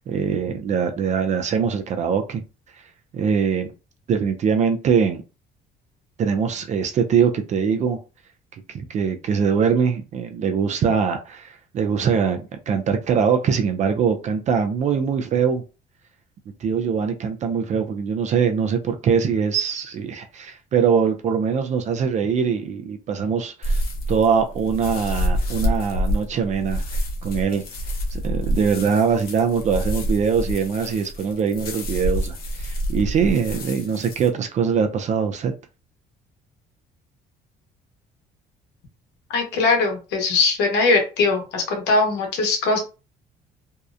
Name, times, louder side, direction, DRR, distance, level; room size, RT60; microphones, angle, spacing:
voice 1, 0.0-2.4 3.1-3.7 4.1-5.2 6.2-8.0 8.7-15.6 16.6-23.8 24.1-27.6 28.1-35.5, right 6 dB, 45° right, 0.4 m, -22 dB
sound 1, 23.6-34.3, equal, 60° left, 0.7 m, -27 dB
voice 2, 39.3-42.8, left 3 dB, 85° left, 0.9 m, -20 dB
2.7 x 2.0 x 2.4 m
cardioid pair, 110°, 17 cm